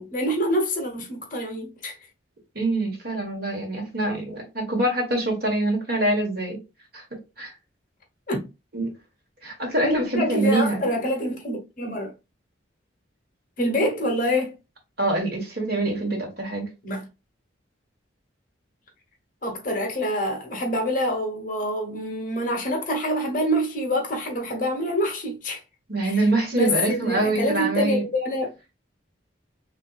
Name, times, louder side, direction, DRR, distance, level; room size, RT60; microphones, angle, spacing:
voice 1, 0.0-2.0 8.3-8.5 9.8-12.1 13.6-14.5 16.8-17.1 19.4-25.6 26.0-26.3 26.5-28.6, equal, 40° left, 1.1 m, -26 dB
voice 2, 2.5-6.6 6.9-7.5 8.7-8.9 9.4-10.9 15.0-16.7 25.9-28.0, right 2 dB, 50° right, 1.4 m, -25 dB
4.0 x 3.3 x 2.4 m
head